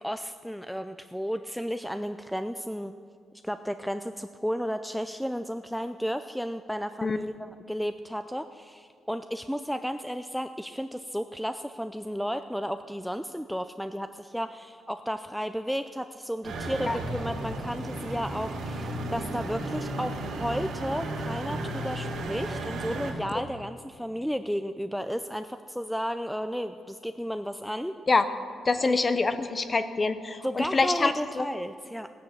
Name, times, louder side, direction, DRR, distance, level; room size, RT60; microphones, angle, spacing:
voice 1, 0.0-2.9 3.4-28.0 28.8-29.0 30.4-32.1, equal, ahead, 9 dB, 0.3 m, -33 dB
sound 1, 16.4-23.1, right 1 dB, 80° right, 2.8 m, -34 dB
voice 2, 28.7-31.5, left 3 dB, 25° left, 11 dB, 0.7 m, -25 dB
17.0 x 10.0 x 7.4 m, 2.2 s
wide cardioid pair, 155°, 0 cm